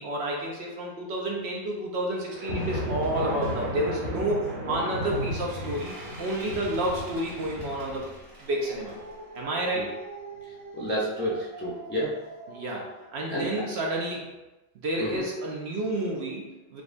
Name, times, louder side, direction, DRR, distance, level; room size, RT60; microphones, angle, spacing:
voice 1, 0.0-8.1 8.4-9.0 9.3-9.9 12.5-14.3 14.7-16.8, right 1 dB, 60° right, -1 dB, 0.8 m, -30 dB
sound 1, 2.3-12.9, equal, 40° right, 1.2 m, -36 dB
voice 2, 10.7-12.1 13.3-13.6 15.0-15.2, equal, 20° left, -6 dB, 0.3 m, -30 dB
5.0 x 2.1 x 2.5 m, 1.0 s
omnidirectional pair, 1.4 m